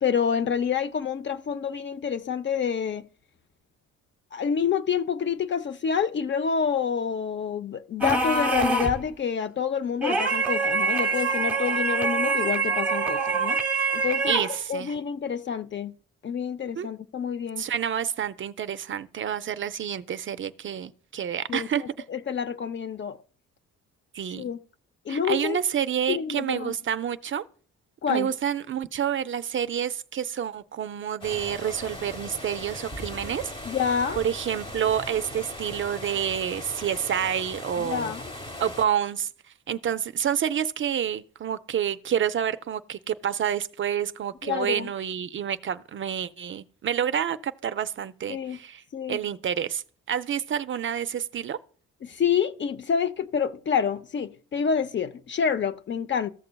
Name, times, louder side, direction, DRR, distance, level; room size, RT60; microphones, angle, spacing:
voice 1, 0.0-3.0 4.3-13.6 13.9-14.3 14.7-15.9 16.2-17.6 21.5-23.2 24.3-24.6 25.1-25.6 26.1-26.7 28.0-28.3 33.6-34.2 37.8-38.3 44.4-44.9 48.3-48.6 48.9-49.2 52.0-56.3, left 7 dB, 40° left, 0.5 m, -28 dB
sound 1, 8.0-9.1 10.0-14.6, right 3 dB, 5° right, 0.9 m, -25 dB
voice 2, 14.3-14.9 16.8-16.9 17.6-21.8 24.1-24.5 25.1-27.4 28.1-33.5 34.2-38.1 38.6-39.3 39.7-48.8 49.1-49.8 50.1-51.6, right 9 dB, 45° right, 0.4 m, -28 dB
sound 2, 31.2-38.9, left 1 dB, 20° left, 1.1 m, -39 dB
14.5 x 6.6 x 2.2 m
cardioid pair, 90°, 30 cm